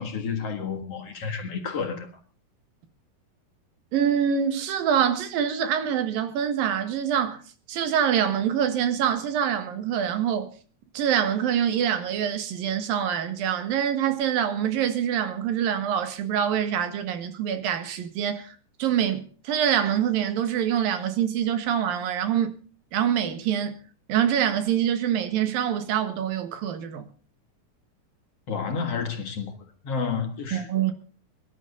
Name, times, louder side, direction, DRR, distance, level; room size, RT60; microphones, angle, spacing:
voice 1, 0.0-2.1 28.5-29.5 29.8-30.9, left 5 dB, 50° left, 2.3 m, -30 dB
voice 2, 3.9-7.4 7.7-10.5 10.9-22.5 22.9-23.8 24.1-27.0 30.5-30.9, right 9 dB, 90° right, 3.4 m, -25 dB
23.0 x 11.5 x 3.9 m
omnidirectional pair, 3.9 m